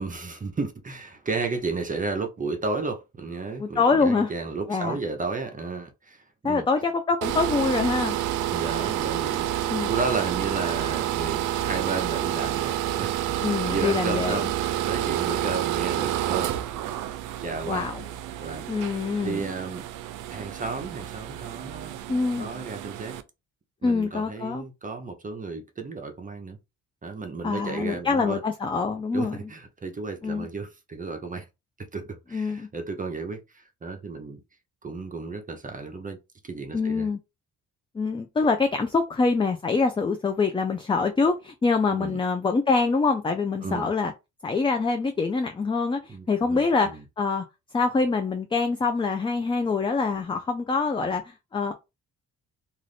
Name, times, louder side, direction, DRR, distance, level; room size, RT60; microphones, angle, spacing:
voice 1, 0.0-6.7 8.5-13.3 13.7-16.7 17.4-17.9 18.4-18.9 19.2-19.8 20.3-22.0 22.4-23.2 23.8-26.6 27.0-28.4 29.1-31.5 31.8-34.4 34.8-36.2 36.4-37.1 41.9-42.2 43.6-43.9 46.1-47.0, right 4 dB, 25° right, 0.6 m, -33 dB
voice 2, 3.6-4.3 4.7-5.0 6.4-8.2 9.7-9.9 13.4-14.4 17.7-18.0 18.7-19.5 22.1-22.5 23.8-24.6 27.4-29.4 30.2-30.5 32.3-32.7 36.7-37.2 37.9-44.1 44.4-47.4 47.7-51.7, left 4 dB, 15° left, 0.4 m, -25 dB
sound 1, 7.2-23.2, right 12 dB, 90° right, 0.4 m, -29 dB
2.5 x 2.4 x 3.4 m
cardioid pair, 90°, 30 cm